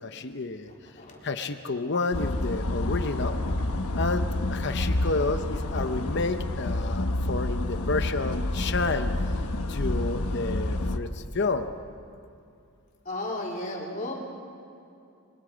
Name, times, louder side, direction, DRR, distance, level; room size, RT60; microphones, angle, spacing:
voice 1, 0.0-0.7 1.2-3.4 4.0-9.1 9.7-11.7, left 3 dB, 50° left, 8 dB, 0.8 m, -30 dB
voice 2, 0.7-1.3 3.4-3.9 4.6-4.8 13.1-14.1, left 1 dB, 35° left, -2 dB, 3.7 m, -36 dB
sound 1, 2.1-11.0, left 1 dB, 85° left, 1.2 m, -28 dB
27.5 x 23.0 x 5.2 m, 2.6 s
head